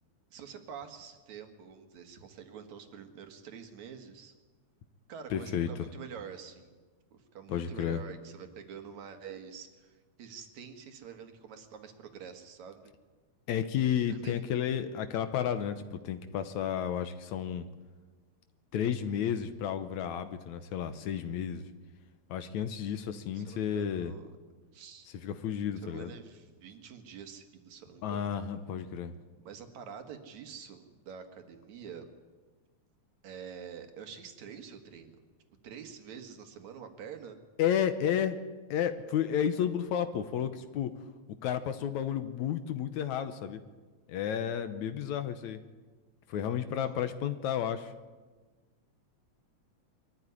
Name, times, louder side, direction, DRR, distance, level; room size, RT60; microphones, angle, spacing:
voice 1, 0.3-4.3 5.1-6.7 7.1-12.8 14.1-14.4 23.3-24.3 24.7-25.1 25.8-28.3 29.4-32.1 33.2-35.2 35.6-37.4 46.8-46.9, right 7 dB, 70° right, 6 dB, 3.0 m, -47 dB
voice 2, 5.3-5.7 7.5-8.0 13.5-17.7 18.7-21.6 22.3-24.1 25.2-26.1 28.0-29.1 37.6-38.4 38.7-40.9 41.4-43.6 44.1-45.6 46.3-47.9, left 9 dB, 75° left, 10 dB, 2.2 m, -32 dB
23.0 x 14.0 x 9.8 m, 1.3 s
omnidirectional pair, 3.5 m